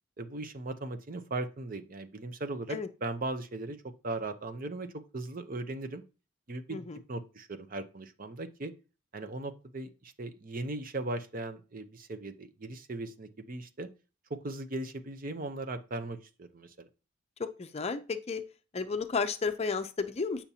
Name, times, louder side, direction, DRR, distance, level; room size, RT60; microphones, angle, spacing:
voice 1, 0.2-3.8 4.0-6.0 6.5-8.7 9.1-13.9 14.3-16.9, right 2 dB, 45° right, 9 dB, 0.7 m, -38 dB
voice 2, 17.4-18.4 18.7-20.4, left 4 dB, 30° left, 9 dB, 0.5 m, -33 dB
8.5 x 5.7 x 2.8 m, 0.32 s
head